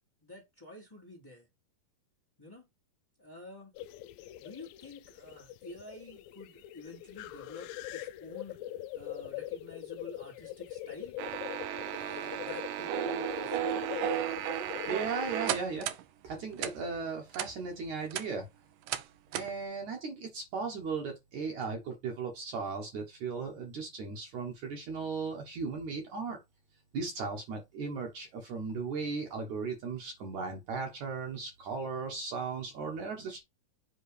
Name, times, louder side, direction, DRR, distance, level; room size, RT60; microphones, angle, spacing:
voice 1, 0.2-1.5 2.4-2.7 3.2-3.7 4.4-8.6 8.9-11.2 11.8-14.0, left 2 dB, 15° left, 0.7 m, -48 dB
sound 1, 3.7-15.4, left 13 dB, 90° left, 2.0 m, -42 dB
sound 2, 11.2-16.0 16.6-16.7 17.3-17.5 17.9-18.3 18.9-19.0 19.3-19.5, right 12 dB, 75° right, 2.0 m, -34 dB
voice 2, 14.8-15.9 16.2-18.5 19.3-26.4 26.9-33.4, right 4 dB, 60° right, 2.2 m, -37 dB
7.9 x 3.8 x 4.9 m
omnidirectional pair, 4.7 m